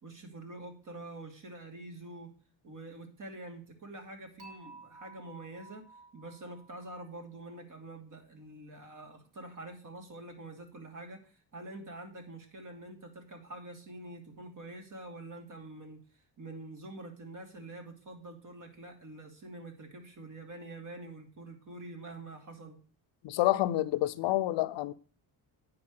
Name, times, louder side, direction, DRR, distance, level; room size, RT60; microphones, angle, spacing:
voice 1, 0.0-2.3 2.6-5.8 6.1-16.0 16.4-22.8, right 2 dB, 45° right, 2.9 m, -46 dB
Dishes pots and pans / Chink clink, 4.4-7.5, right 3 dB, 60° right, 3.0 m, -54 dB
voice 2, 23.2-24.9, left 15 dB, 70° left, 0.7 m, -28 dB
9.5 x 4.8 x 6.4 m
cardioid pair, 100°, 45 cm